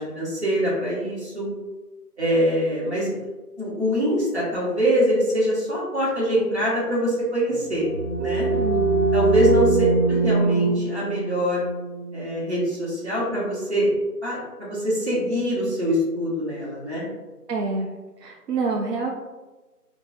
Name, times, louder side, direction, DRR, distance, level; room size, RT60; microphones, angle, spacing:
voice 1, 0.0-1.5 2.2-3.3 3.6-7.8 8.2-8.5 9.1-9.8 10.1-11.6 12.1-13.9 14.2-17.1, equal, 45° right, -7 dB, 1.2 m, -24 dB
sound 1, 7.6-13.2, right 3 dB, 65° right, 1.4 m, -23 dB
voice 2, 8.5-9.1 17.5-17.9 18.2-19.1, right 3 dB, 80° right, 0 dB, 0.6 m, -27 dB
3.5 x 2.0 x 2.6 m, 1.2 s
figure-of-eight pair, 175°, 48 cm